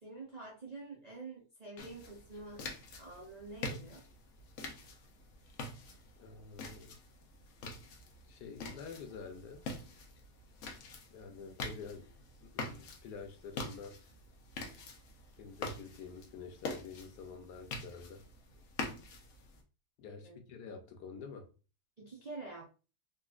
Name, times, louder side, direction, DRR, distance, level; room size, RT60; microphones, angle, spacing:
voice 1, 0.0-2.7 3.0-4.0 20.2-20.4 22.0-22.6, right 3 dB, 45° right, 0.5 m, -47 dB
sound 1, 1.8-19.6, left 3 dB, 60° left, 0.9 m, -45 dB
voice 2, 6.2-6.9 8.3-9.6 11.1-12.1 12.4-14.0 15.4-18.2 20.0-21.5, left 5 dB, 85° left, 1.3 m, -48 dB
4.0 x 2.4 x 2.4 m
omnidirectional pair, 1.7 m